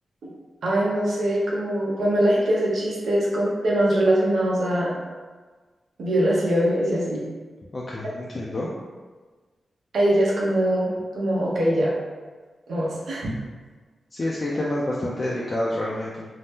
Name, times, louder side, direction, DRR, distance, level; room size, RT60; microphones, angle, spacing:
voice 1, 0.6-4.9 6.0-7.2 9.9-11.9 12.7-13.3, right 1 dB, 80° right, -5 dB, 0.7 m, -22 dB
voice 2, 7.7-8.7 14.1-16.3, left 1 dB, 35° left, -5 dB, 0.4 m, -28 dB
2.7 x 2.0 x 3.4 m, 1.4 s
wide cardioid pair, 120°, 0 cm